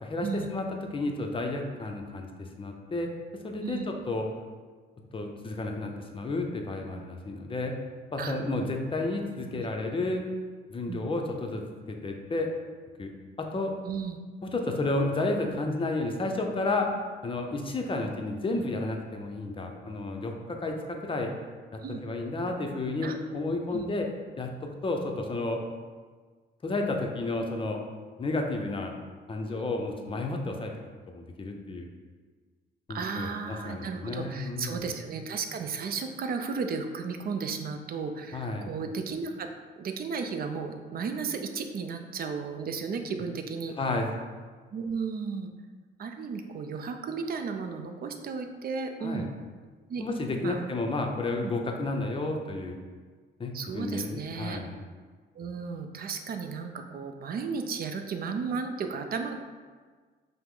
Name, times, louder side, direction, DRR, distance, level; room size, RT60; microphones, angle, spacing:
voice 1, 0.0-2.3 2.6-3.1 3.4-4.3 5.1-7.8 8.1-10.2 10.7-11.6 11.9-12.5 13.0-13.1 13.4-13.7 14.4-16.9 17.2-21.3 22.0-24.1 24.4-25.6 26.6-27.8 28.2-28.9 29.3-30.7 31.1-31.9 32.9-34.9 38.3-38.7 43.8-44.1 49.0-49.3 50.0-52.8 53.4-54.8, left 2 dB, 25° left, 2 dB, 0.6 m, -31 dB
voice 2, 13.8-14.2 21.8-22.0 23.0-23.1 23.7-23.8 29.5-29.6 32.9-39.5 39.8-43.8 44.7-45.5 46.0-49.3 49.9-50.0 50.4-50.7 51.4-51.5 53.5-54.6 55.4-59.3, right 5 dB, 50° right, 6 dB, 0.5 m, -34 dB
5.5 x 2.1 x 3.7 m, 1.5 s
cardioid pair, 90°, 20 cm